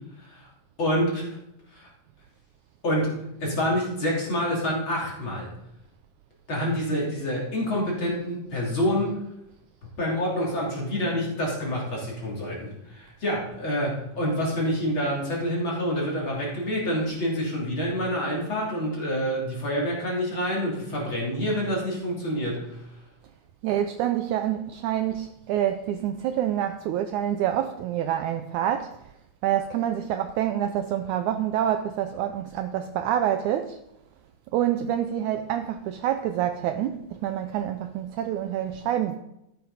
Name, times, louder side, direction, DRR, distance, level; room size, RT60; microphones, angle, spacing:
voice 1, 0.8-1.2 1.7-1.9 2.8-3.1 3.4-5.5 6.5-9.2 10.0-22.8, equal, 35° left, 3.4 m, -27 dB
voice 2, 23.6-28.9 29.4-33.8 34.5-39.2, right 11 dB, 80° right, 1.8 m, -27 dB
13.0 x 9.3 x 4.0 m
omnidirectional pair, 3.9 m